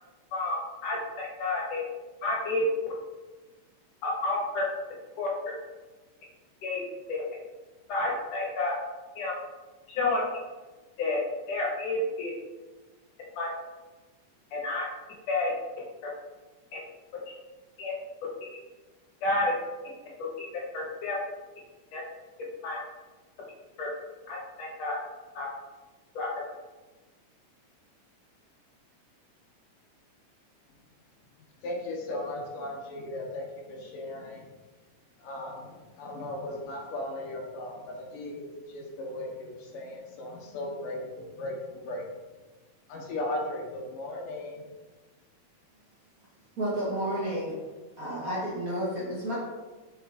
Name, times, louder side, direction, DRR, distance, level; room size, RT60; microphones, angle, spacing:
voice 1, 0.8-1.8 2.2-2.6 4.0-4.6 5.2-5.3 6.6-6.8 7.1-7.2 7.9-8.7 9.2-9.3 9.9-10.2 11.0-11.2 11.5-12.3 13.4-13.5 14.5-14.8 15.3-15.5 17.8-17.9 19.2-19.5 20.4-20.5 20.7-21.2 21.9-22.0 22.6-22.8 23.8-23.9 24.3-24.4 24.8-24.9 25.3-25.5 26.1-26.3, left 2 dB, 60° left, -3 dB, 2.4 m, -29 dB
voice 2, 31.6-34.5 35.2-42.1 42.9-44.7, left 1 dB, 90° left, -1 dB, 2.8 m, -37 dB
voice 3, 46.6-47.5 48.0-49.4, right 1 dB, 70° right, -7 dB, 0.8 m, -31 dB
5.5 x 5.4 x 3.5 m, 1.2 s
omnidirectional pair, 3.7 m